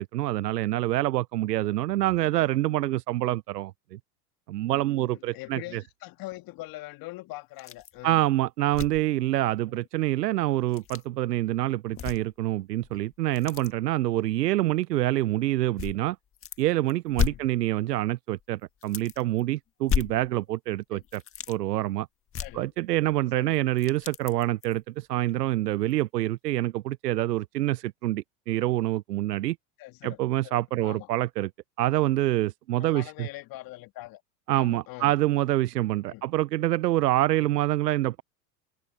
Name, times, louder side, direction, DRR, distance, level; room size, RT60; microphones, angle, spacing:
voice 1, 0.0-4.0 4.5-5.8 8.0-16.2 16.6-21.2 21.5-22.1 22.5-29.6 30.0-31.5 31.8-33.3 34.5-38.2, right 15 dB, 85° right, 0.6 m, -26 dB
voice 2, 5.0-8.2 9.7-9.9 17.2-17.6 20.9-21.1 22.3-22.7 23.3-23.6 29.8-31.1 32.8-34.2 34.5-35.2 36.1-36.3 37.4-37.5, left 19 dB, 45° left, 1.9 m, -43 dB
sound 1, 7.6-8.0 8.3-8.4 8.7-9.1 10.6-11.0 11.9-12.5 12.8-13.7 14.6-14.7 15.8-16.6 16.9-18.0 18.4-18.5 18.8-19.4 19.8-20.7 21.0-21.6 22.3-23.2 23.5-24.8 25.3-25.4 25.9-26.0, left 9 dB, 30° left, 1.6 m, -33 dB
hypercardioid pair, 90°, 47 cm